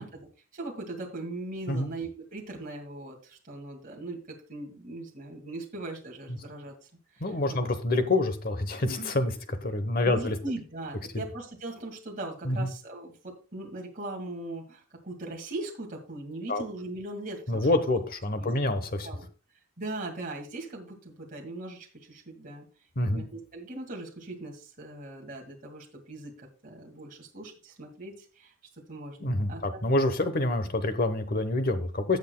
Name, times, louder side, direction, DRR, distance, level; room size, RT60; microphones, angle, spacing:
voice 1, 0.0-6.7 7.1-7.6 10.0-17.7 18.4-18.5 19.0-19.3 19.8-22.7 23.0-28.5 28.9-29.8, right 2 dB, 40° right, 0 dB, 2.1 m, -39 dB
voice 2, 7.2-10.3 12.4-12.7 16.5-16.6 17.5-19.1 23.0-23.2 29.2-32.2, left 2 dB, 45° left, 10 dB, 1.0 m, -27 dB
16.5 x 6.5 x 2.3 m, 0.36 s
head